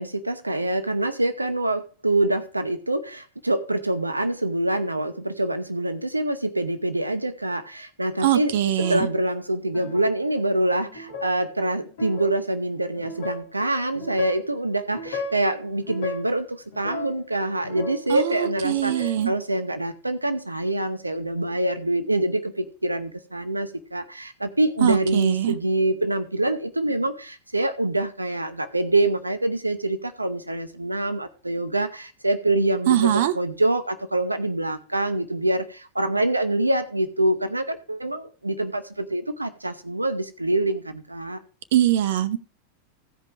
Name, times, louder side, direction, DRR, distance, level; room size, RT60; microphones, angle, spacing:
voice 1, 0.0-8.5 8.8-41.4, right 1 dB, 85° right, 9 dB, 0.8 m, -25 dB
voice 2, 8.2-9.1 18.1-19.3 24.8-25.6 32.9-33.3 41.7-42.4, right 12 dB, 55° right, 10 dB, 0.8 m, -22 dB
sound 1, 8.8-9.1 9.7-10.1 10.8-11.3 11.9-12.3 13.0-13.5 13.9-14.5 14.9-15.5 15.8-16.3 16.7-18.1 18.5-19.3, left 2 dB, 60° left, 2.6 m, -35 dB
15.5 x 5.2 x 4.7 m, 0.36 s
figure-of-eight pair, 90°, 0 cm